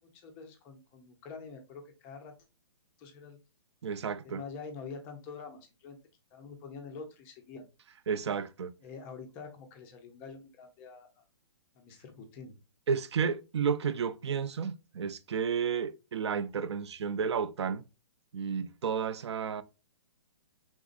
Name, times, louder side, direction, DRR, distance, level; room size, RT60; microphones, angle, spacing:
voice 1, 0.1-2.3 3.0-3.4 4.2-6.0 6.3-7.7 8.8-11.2 11.8-12.6, left 5 dB, 10° left, 0.4 m, -46 dB
voice 2, 3.8-4.4 8.1-8.7 12.9-17.8 18.3-19.6, right 6 dB, 65° right, 0.5 m, -32 dB
5.1 x 3.5 x 2.4 m
hypercardioid pair, 175°, 15 cm